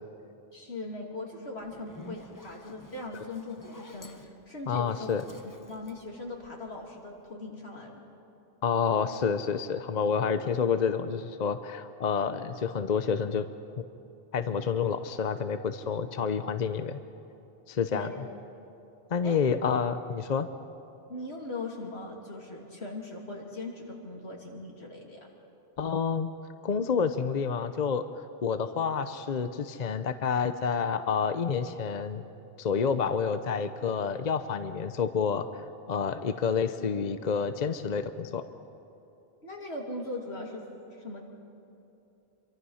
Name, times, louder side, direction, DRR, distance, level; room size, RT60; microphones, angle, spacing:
voice 1, 0.5-5.1 5.7-7.9 17.9-18.2 19.2-19.5 21.1-25.3 39.4-40.6 40.9-41.2, left 2 dB, 80° left, 0 dB, 3.2 m, -39 dB
Zipper (clothing), 1.6-6.9, left 2 dB, 20° left, 1.0 m, -50 dB
voice 2, 4.7-5.2 8.6-13.5 14.3-17.0 17.7-18.1 19.1-20.5 25.8-26.3 26.6-32.2 32.6-35.6 35.9-38.4, left 6 dB, 45° left, 10 dB, 0.8 m, -29 dB
26.5 x 24.0 x 5.7 m, 2.8 s
omnidirectional pair, 1.1 m